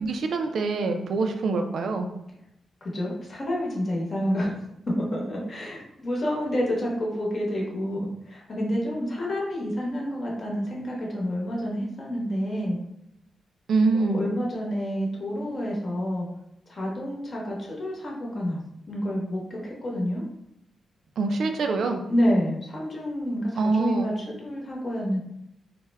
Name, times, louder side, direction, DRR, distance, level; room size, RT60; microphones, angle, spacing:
voice 1, 0.0-2.1 13.7-14.2 21.2-22.0 23.6-24.2, right 3 dB, 70° right, 5 dB, 0.3 m, -25 dB
voice 2, 2.8-4.5 5.0-12.8 13.9-16.3 16.7-18.6 18.9-20.2 22.1-25.2, equal, 35° left, -3 dB, 0.9 m, -28 dB
3.3 x 2.1 x 3.3 m, 0.80 s
wide cardioid pair, 155°, 0 cm